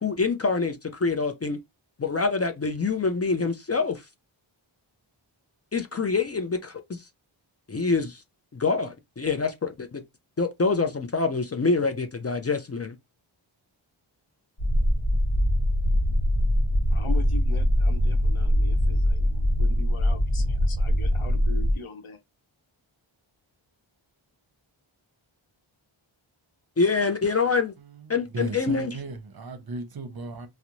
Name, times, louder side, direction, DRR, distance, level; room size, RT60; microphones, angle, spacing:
voice 1, 0.0-1.6 2.0-4.0 5.7-7.0 7.7-8.2 8.5-10.0 10.4-13.0 26.8-27.7 28.1-28.9, left 4 dB, 35° left, 0.4 m, -26 dB
sound 1, 14.6-21.7, equal, 55° left, 1.0 m, -22 dB
voice 2, 16.9-22.2, left 3 dB, 80° left, 0.7 m, -40 dB
voice 3, 27.8-30.5, right 2 dB, 50° right, 0.7 m, -36 dB
2.5 x 2.0 x 2.9 m
wide cardioid pair, 45°, 49 cm